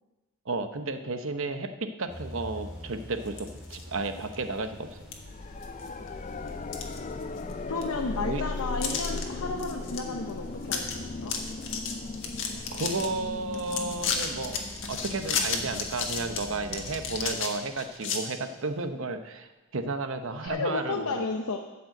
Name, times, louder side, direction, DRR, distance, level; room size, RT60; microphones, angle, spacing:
voice 1, 0.4-5.0 8.2-8.4 12.7-14.6 14.9-21.2, right 3 dB, 65° right, 8 dB, 0.9 m, -33 dB
sound 1, 2.1-17.3, equal, 5° right, 2.9 m, -46 dB
sound 2, 3.3-3.8 4.3-4.4 5.1-5.2 5.6-6.1 6.5-7.5 7.8-7.9 8.8-9.2 9.6-10.0 10.3-10.4 10.6-10.9 11.2-13.1 13.5-18.2, left 5 dB, 60° left, 1.5 m, -33 dB
sound 3, 5.2-18.1 20.5-20.6, left 3 dB, 35° left, 0.5 m, -38 dB
voice 2, 7.7-11.4 20.4-21.6, left 3 dB, 85° left, 2 dB, 0.8 m, -33 dB
13.0 x 5.5 x 7.8 m, 1.1 s
head